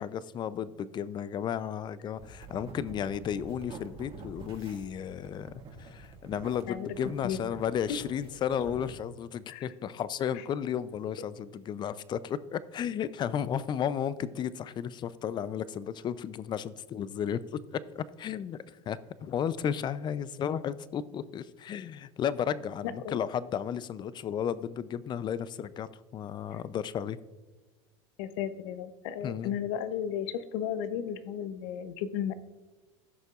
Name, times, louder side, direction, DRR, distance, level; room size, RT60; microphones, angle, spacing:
voice 1, 0.0-27.2 29.2-29.6, left 8 dB, 30° left, 17 dB, 0.5 m, -34 dB
sound 1, 2.2-9.0, right 3 dB, 40° right, 1.9 m, -47 dB
voice 2, 6.6-7.0 7.2-7.5 7.9-8.0 9.5-9.7 10.3-10.5 22.9-23.2 26.5-26.6 28.2-32.3, left 9 dB, 65° left, 13 dB, 0.8 m, -34 dB
15.5 x 6.6 x 2.4 m, 1.3 s
supercardioid pair, 110°, 15 cm